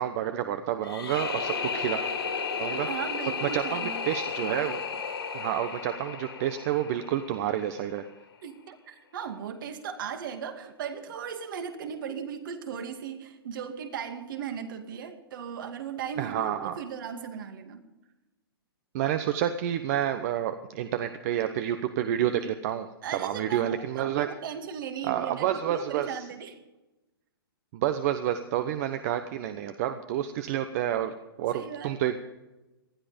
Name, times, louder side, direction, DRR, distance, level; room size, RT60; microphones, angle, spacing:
voice 1, 0.0-2.0 2.6-2.9 3.4-4.8 5.3-8.1 16.2-16.8 18.9-22.9 23.1-24.3 25.0-26.3 27.7-31.1 31.4-32.2, right 11 dB, 40° right, 9 dB, 1.0 m, -29 dB
sound 1, 0.8-7.8, left 5 dB, 80° left, 4.1 m, -33 dB
voice 2, 2.7-4.0 8.4-17.8 23.0-26.6 31.5-31.9, right 7 dB, 55° right, 6 dB, 2.3 m, -37 dB
19.5 x 13.0 x 5.2 m, 1.0 s
hypercardioid pair, 140°, 13 cm